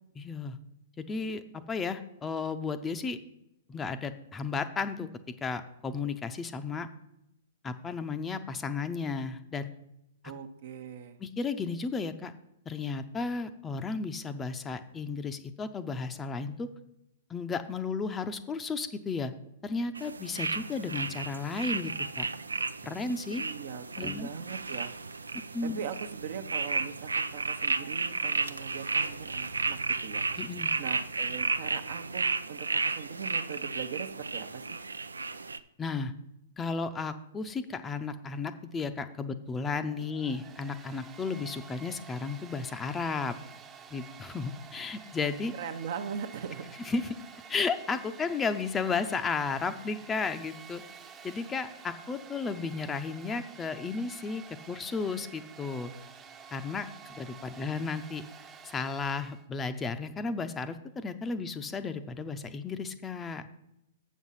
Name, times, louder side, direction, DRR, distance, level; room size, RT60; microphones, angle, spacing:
voice 1, 0.2-0.6 1.0-3.2 3.7-5.1 5.4-6.9 7.6-9.7 11.2-12.3 12.7-16.7 17.3-19.3 19.6-22.3 22.8-23.4 24.0-24.3 25.5-25.8 30.4-30.7 35.8-36.1 36.6-43.3 43.9-45.5 46.8-47.2 47.5-50.8 51.2-55.9 56.5-58.2 58.6-63.4, left 4 dB, 15° left, 10 dB, 0.6 m, -34 dB
voice 2, 10.2-11.2 23.4-24.9 25.6-30.2 30.8-34.8 45.5-46.8, right 7 dB, 60° right, 8 dB, 0.8 m, -40 dB
sound 1, 19.9-35.6, right 4 dB, 90° right, 0.4 m, -33 dB
Domestic sounds home sounds, 39.9-59.4, right 6 dB, 25° right, 0.8 m, -50 dB
7.2 x 6.3 x 5.6 m, 0.82 s
hypercardioid pair, 115°, 0 cm